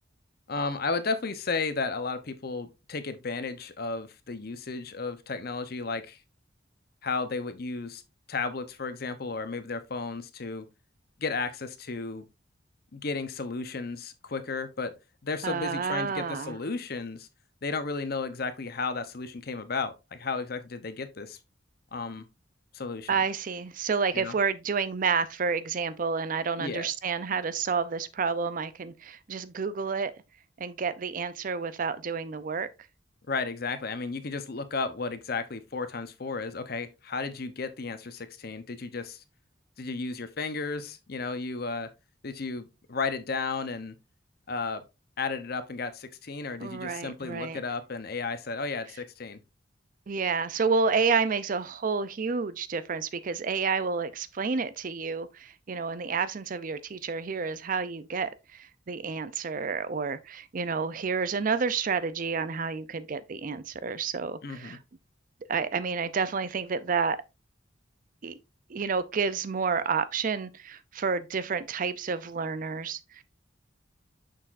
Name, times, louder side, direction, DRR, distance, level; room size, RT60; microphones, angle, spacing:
voice 1, 0.5-6.2 7.0-8.0 8.3-10.7 11.2-12.3 12.9-14.9 15.2-17.3 17.6-21.4 21.9-22.3 22.7-23.1 24.1-24.3 26.6-26.9 33.3-39.2 39.8-41.9 42.2-44.0 44.5-44.8 45.2-49.4 64.4-64.8, left 4 dB, 55° left, 0.8 m, -33 dB
voice 2, 15.4-16.5 23.1-30.1 30.6-32.7 46.6-47.6 50.1-64.8 65.5-67.2 68.2-68.3 68.7-73.2, right 5 dB, 45° right, 0.5 m, -30 dB
6.5 x 6.1 x 2.5 m
head